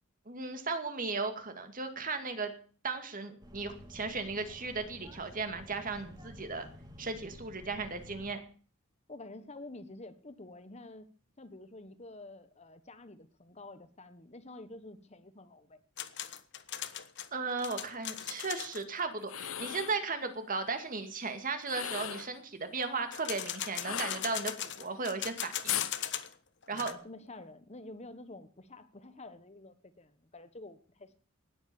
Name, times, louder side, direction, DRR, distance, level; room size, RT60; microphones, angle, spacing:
voice 1, 0.3-2.5 2.8-6.7 7.0-8.4 17.3-25.8 26.7-26.9, right 4 dB, 40° right, 8 dB, 2.2 m, -36 dB
sound 1, 3.4-8.3, equal, 20° right, 2.6 m, -51 dB
voice 2, 9.1-11.1 11.4-15.8 26.7-31.1, left 2 dB, 30° left, 11 dB, 1.2 m, -49 dB
sound 2, 16.0-18.8 23.1-26.3 26.6-26.9, left 11 dB, 55° left, 1.2 m, -39 dB
sound 3, 19.2-20.0 21.6-22.4 23.8-24.7 25.7-26.0, left 10 dB, 75° left, 0.9 m, -37 dB
19.0 x 8.5 x 7.0 m, 0.42 s
head